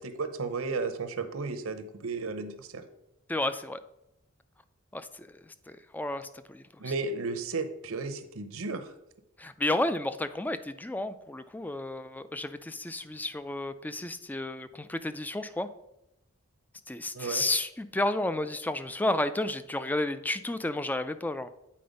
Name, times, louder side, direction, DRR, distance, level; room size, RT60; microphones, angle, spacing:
voice 1, 0.0-2.8 6.8-8.9 17.1-17.4, right 4 dB, 75° right, 10 dB, 0.8 m, -34 dB
voice 2, 3.3-3.8 4.9-6.6 9.4-15.7 16.9-21.5, left 2 dB, 10° left, 12 dB, 0.3 m, -32 dB
8.6 x 4.3 x 5.2 m, 0.85 s
head